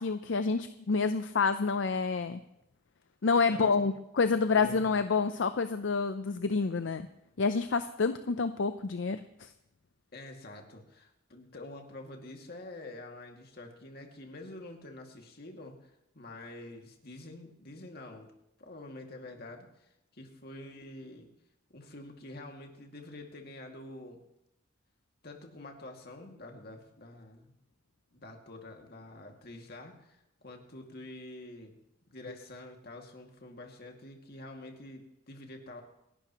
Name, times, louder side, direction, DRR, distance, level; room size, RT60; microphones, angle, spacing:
voice 1, 0.0-2.4 3.2-7.1 7.4-9.5, left 4 dB, 70° left, 10 dB, 0.6 m, -28 dB
voice 2, 3.4-3.8 4.5-4.9 10.1-18.3 18.6-21.3 21.7-24.2 25.2-27.6 28.1-31.8 32.1-35.8, left 2 dB, 55° left, 2 dB, 2.2 m, -47 dB
28.0 x 11.5 x 3.0 m, 0.84 s
head